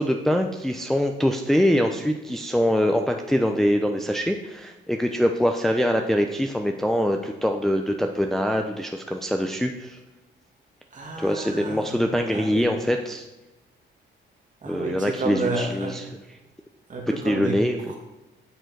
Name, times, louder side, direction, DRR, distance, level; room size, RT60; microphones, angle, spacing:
voice 1, 0.0-10.0 11.2-13.3 14.7-16.0 17.2-17.9, equal, ahead, 4 dB, 0.5 m, -24 dB
voice 2, 10.9-12.0 12.3-12.6 14.6-15.9 16.9-17.6 17.9-18.0, right 3 dB, 40° right, 0 dB, 2.1 m, -31 dB
9.0 x 4.5 x 4.6 m, 1.1 s
cardioid pair, 90°, 20 cm